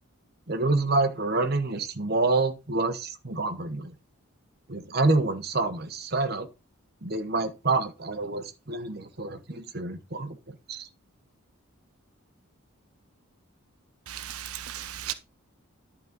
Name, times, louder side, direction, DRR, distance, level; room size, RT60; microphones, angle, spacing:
voice 1, 0.5-3.9 4.7-6.5 7.0-10.4 10.7-10.9, right 3 dB, 45° right, 1.1 m, -27 dB
voice 2, 14.1-15.1, right 11 dB, 85° right, 0.7 m, -36 dB
11.0 x 4.1 x 5.3 m
head